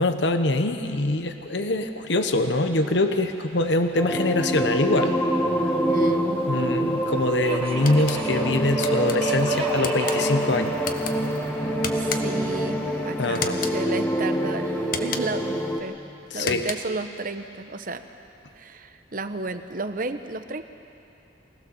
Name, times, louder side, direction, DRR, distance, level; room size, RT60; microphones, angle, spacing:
voice 1, 0.0-5.2 6.5-10.7 13.2-13.6 16.3-16.7, left 2 dB, 70° left, 7 dB, 1.1 m, -24 dB
Subway metro underground, 2.5-14.9, right 2 dB, 30° right, 1.6 m, -40 dB
sound 1, 4.0-15.8, right 1 dB, 10° left, 1.6 m, -26 dB
voice 2, 5.9-6.5 11.9-16.0 16.3-18.0 18.6-20.6, right 2 dB, 45° right, 9 dB, 0.9 m, -32 dB
sound 2, 7.8-8.2 8.8-9.2 9.8-10.2 10.8-11.1 11.8-12.4 13.3-13.8 14.8-15.4 16.3-17.0, left 6 dB, 45° left, 1.2 m, -33 dB
24.0 x 18.0 x 7.0 m, 2.7 s
head